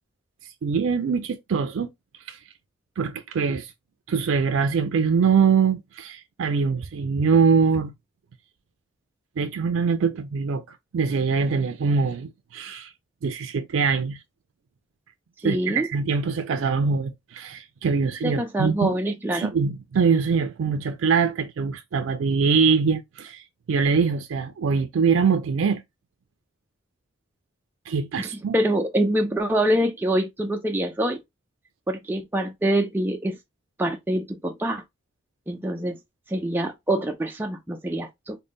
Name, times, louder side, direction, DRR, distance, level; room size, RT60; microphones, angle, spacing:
voice 1, 0.6-1.9 2.3-2.4 3.0-3.7 4.1-7.9 9.4-10.6 10.9-12.9 13.2-14.2 15.4-19.0 19.3-25.8 27.9-28.6, right 5 dB, 85° right, 0.4 m, -23 dB
voice 2, 15.4-15.9 18.2-19.5 28.2-31.2 31.9-33.4 33.8-34.8 35.5-36.0 36.3-38.4, right 1 dB, 10° right, 0.3 m, -25 dB
3.8 x 2.1 x 3.5 m
head